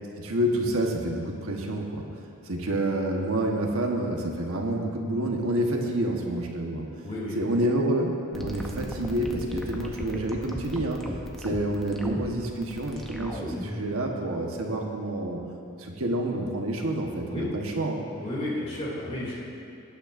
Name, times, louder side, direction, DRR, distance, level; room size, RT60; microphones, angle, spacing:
voice 1, 0.2-2.0 2.5-6.9 7.3-11.1 11.4-15.4 15.8-18.0, right 1 dB, 70° right, 1 dB, 1.2 m, -28 dB
voice 2, 7.0-7.4 17.3-17.5 18.2-19.3, left 1 dB, 30° left, -6 dB, 2.6 m, -32 dB
sound 1, 8.3-13.9, equal, ahead, 0.6 m, -36 dB
17.5 x 9.0 x 2.6 m, 2.5 s
head